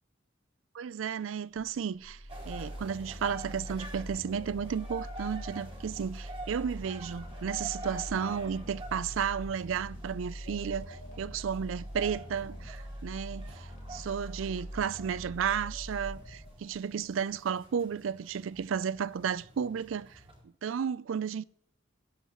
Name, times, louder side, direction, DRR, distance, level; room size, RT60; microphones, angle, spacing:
voice 1, 0.7-2.2 2.5-20.2 20.6-21.4, right 7 dB, 90° right, 0.4 m, -33 dB
sound 1, 1.5-17.6 18.0-18.1, equal, 35° left, 2.0 m, -43 dB
sound 2, 2.3-20.4, right 1 dB, 30° right, 2.5 m, -48 dB
sound 3, 4.2-7.2 10.3-13.7 15.4-18.1, left 1 dB, 75° left, 3.0 m, -58 dB
18.5 x 8.3 x 3.0 m
head